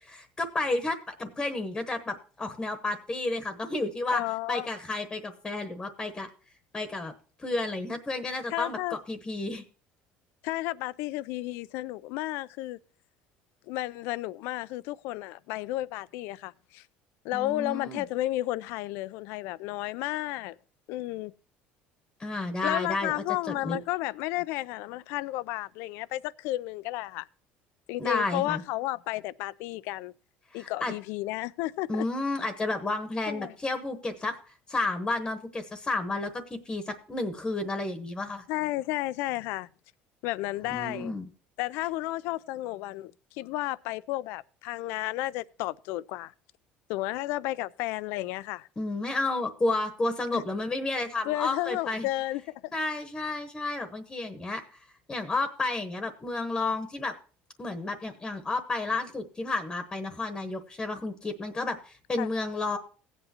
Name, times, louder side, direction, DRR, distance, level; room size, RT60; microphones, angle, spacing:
voice 1, 0.1-4.2 4.5-6.3 6.7-7.1 7.4-9.6 17.3-18.0 22.2-23.8 28.0-28.6 30.5-30.9 31.9-38.4 40.6-41.3 48.8-52.1 52.7-54.8 55.1-57.1 57.6-62.8, left 2 dB, 20° left, 1.1 m, -31 dB
voice 2, 4.1-4.7 8.5-9.0 10.4-12.8 13.7-16.8 17.2-20.6 20.9-21.3 22.6-27.3 27.9-30.1 30.5-32.1 33.3-33.5 38.5-39.7 40.2-41.1 41.6-46.3 46.9-48.7 50.3-50.4 51.2-52.7 62.2-62.3, left 17 dB, 75° left, 0.4 m, -32 dB
17.0 x 8.1 x 2.9 m
cardioid pair, 125°, 4 cm